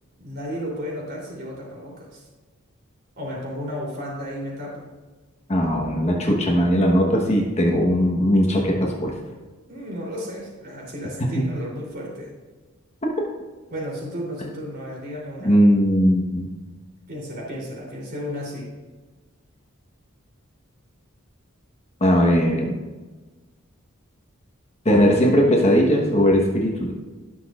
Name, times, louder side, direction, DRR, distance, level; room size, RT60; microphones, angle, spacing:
voice 1, 0.2-2.3 3.2-4.8 9.7-12.3 13.7-15.5 17.1-18.7, equal, 50° right, -3 dB, 3.3 m, -33 dB
voice 2, 5.5-9.1 11.3-11.4 13.0-13.1 15.4-16.5 22.0-22.8 24.8-26.9, equal, 30° left, 0 dB, 1.2 m, -19 dB
18.0 x 6.1 x 2.5 m, 1.3 s
head